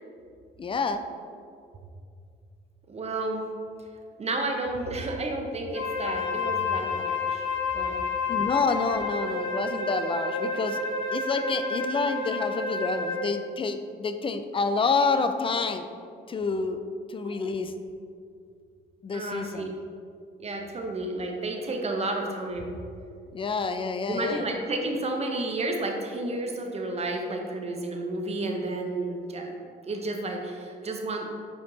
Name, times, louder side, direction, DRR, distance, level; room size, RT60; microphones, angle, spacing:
voice 1, 0.6-1.0 8.3-10.8 11.1-15.9 16.3-16.8 17.1-17.7 19.0-19.7 23.3-24.5, left 4 dB, 25° left, 9 dB, 0.4 m, -28 dB
voice 2, 2.9-3.4 4.2-7.4 7.7-8.0 17.2-17.4 19.1-19.8 20.4-22.7 24.1-29.6 29.8-31.3, right 2 dB, 30° right, 2 dB, 0.9 m, -31 dB
Wind instrument woodwind instrument, 5.7-13.3, left 3 dB, 90° left, 1.2 m, -30 dB
5.5 x 4.4 x 4.0 m, 2.3 s
cardioid pair, 90°, 20 cm